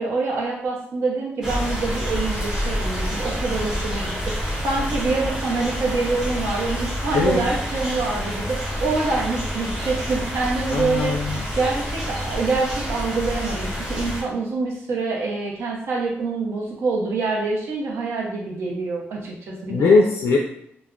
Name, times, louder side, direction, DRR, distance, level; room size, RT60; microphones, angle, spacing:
voice 1, 0.0-11.1 11.6-20.0, right 3 dB, 75° right, -2 dB, 0.7 m, -26 dB
sound 1, 1.4-14.2, equal, 15° right, 0.7 m, -28 dB
voice 2, 10.7-11.5 19.7-20.4, left 4 dB, 80° left, 0 dB, 0.3 m, -19 dB
2.3 x 2.1 x 3.5 m, 0.72 s
wide cardioid pair, 160°, 4 cm